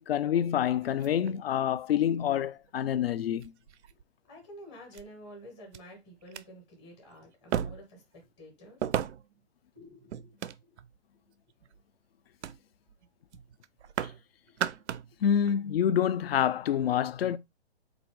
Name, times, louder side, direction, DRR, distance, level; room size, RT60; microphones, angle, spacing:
voice 1, 0.0-3.5 15.2-17.4, left 9 dB, 60° left, 0.4 m, -27 dB
sound 1, 0.8-1.8 2.7-2.8 3.4-4.0 4.9-5.0 5.7-5.8 6.2-6.4 7.5-8.0 8.8-9.4 10.1-11.0 11.5-11.8 12.4-12.6 12.9-13.1 13.3-14.2 14.5-15.1 15.5-15.6, right 10 dB, 85° right, 0.5 m, -35 dB
voice 2, 4.2-8.8 9.7-10.8 14.4-15.2, equal, 10° left, 0.7 m, -51 dB
4.0 x 2.6 x 4.5 m
hypercardioid pair, 170°, 33 cm